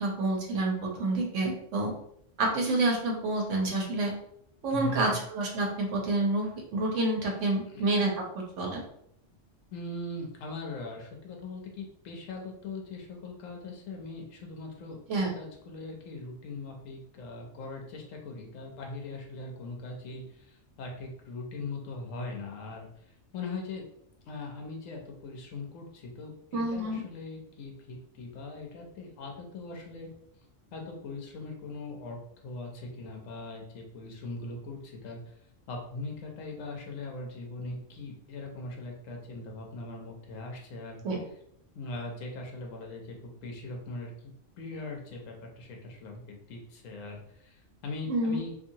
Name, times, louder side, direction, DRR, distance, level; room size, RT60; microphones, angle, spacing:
voice 1, 0.0-1.9 2.4-4.1 4.6-8.1 8.6-8.8 15.1-15.3 26.5-27.0 41.0-41.2 48.1-48.4, right 2 dB, 75° right, 0 dB, 1.1 m, -28 dB
voice 2, 4.7-5.2 7.7-7.8 9.7-22.9 23.3-23.8 24.3-30.1 30.7-35.2 35.7-41.0 41.7-48.5, left 2 dB, 85° left, 1 dB, 1.1 m, -40 dB
2.7 x 2.7 x 2.7 m, 0.71 s
omnidirectional pair, 1.3 m